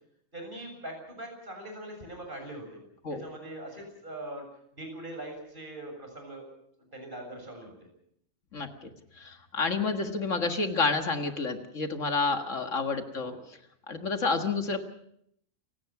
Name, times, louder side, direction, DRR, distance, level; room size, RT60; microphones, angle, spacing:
voice 1, 0.3-2.8 3.1-4.5 4.7-6.4 6.9-7.9 13.2-13.4, right 1 dB, 40° right, 3 dB, 7.4 m, -42 dB
voice 2, 8.5-13.3 13.9-14.8, left 4 dB, 75° left, 6 dB, 2.1 m, -29 dB
29.0 x 18.0 x 5.9 m, 0.71 s
omnidirectional pair, 1.3 m